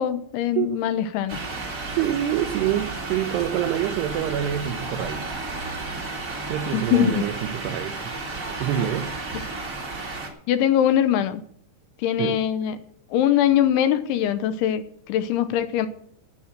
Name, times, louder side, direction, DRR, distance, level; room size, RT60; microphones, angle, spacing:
voice 1, 0.0-1.4 6.7-7.3 10.5-11.4 12.0-12.8 13.1-15.9, left 10 dB, 80° left, 3.1 m, -22 dB
sound 1, 1.3-10.3, right 3 dB, 50° right, 0.9 m, -32 dB
voice 2, 1.8-5.4 6.5-8.2 8.6-9.1 12.2-12.4, right 11 dB, 90° right, 2.3 m, -26 dB
14.0 x 8.5 x 7.4 m
omnidirectional pair, 5.7 m